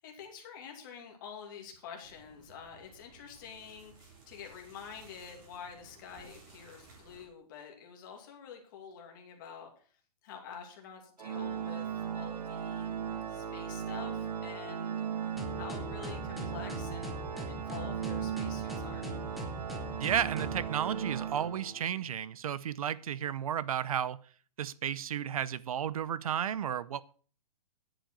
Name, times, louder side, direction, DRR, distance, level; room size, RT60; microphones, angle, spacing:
voice 1, 0.0-9.9 10.2-12.9 13.3-15.0 15.5-19.1, left 7 dB, 30° left, 2.6 m, -48 dB
sound 1, 2.0-7.2, right 3 dB, 25° right, 4.0 m, -57 dB
Organ, 11.2-22.0, right 7 dB, 80° right, 1.6 m, -37 dB
sound 2, 15.4-20.6, right 1 dB, ahead, 0.8 m, -41 dB
voice 2, 20.0-24.2 24.6-27.0, right 9 dB, 60° right, 0.7 m, -33 dB
10.5 x 8.0 x 6.2 m
hypercardioid pair, 175°, 20 cm